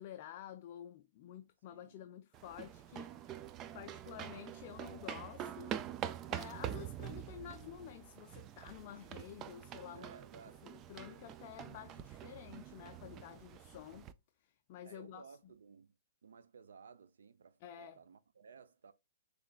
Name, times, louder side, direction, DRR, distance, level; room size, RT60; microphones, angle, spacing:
voice 1, 0.0-3.4 3.7-5.8 6.3-10.1 10.6-14.1 14.4-15.5 17.6-18.0, left 11 dB, 40° left, 0.5 m, -51 dB
voice 2, 1.7-2.0 9.9-10.7 11.2-11.3 14.8-15.9 16.2-18.9, right 6 dB, 90° right, 0.6 m, -57 dB
sound 1, 2.3-14.1, right 10 dB, 25° right, 0.3 m, -46 dB
6.7 x 3.3 x 2.3 m
hypercardioid pair, 155°, 0 cm